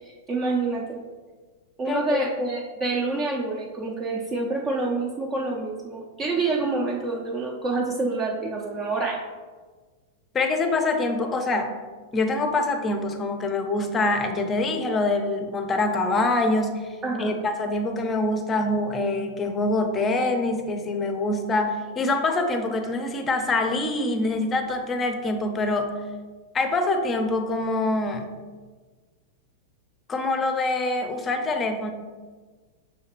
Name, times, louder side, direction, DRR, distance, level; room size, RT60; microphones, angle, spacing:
voice 1, 0.3-1.0 1.8-9.2 17.0-17.4, right 3 dB, 25° right, -1 dB, 0.5 m, -27 dB
voice 2, 1.9-2.2 10.3-11.7 12.1-16.9 17.2-25.9 26.5-28.3 30.1-31.9, left 2 dB, 25° left, 5 dB, 0.6 m, -25 dB
5.6 x 3.2 x 2.9 m, 1.4 s
hypercardioid pair, 100°, 0 cm